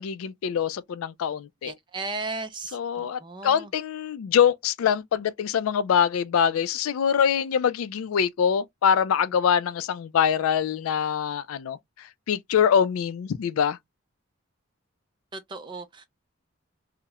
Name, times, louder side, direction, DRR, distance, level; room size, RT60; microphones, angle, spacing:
voice 1, 0.0-1.7 2.7-13.8, left 8 dB, 80° left, 0.3 m, -24 dB
voice 2, 1.6-3.7 15.3-16.1, right 3 dB, 20° right, 0.4 m, -36 dB
2.9 x 2.0 x 2.2 m
head